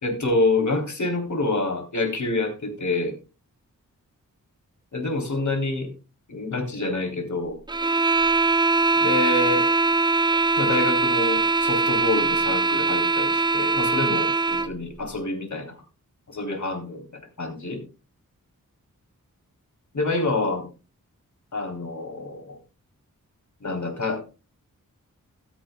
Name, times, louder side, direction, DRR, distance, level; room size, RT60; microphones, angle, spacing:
voice 1, 0.0-3.1 4.9-5.9 6.3-7.6 9.0-9.7 10.6-15.8 16.3-17.8 19.9-20.6 21.5-22.6 23.6-24.2, left 2 dB, 60° left, 3 dB, 3.6 m, -27 dB
sound 1, 7.7-14.7, right 3 dB, 15° right, 0.5 m, -21 dB
14.5 x 13.0 x 2.3 m, 0.31 s
wide cardioid pair, 95°, 32 cm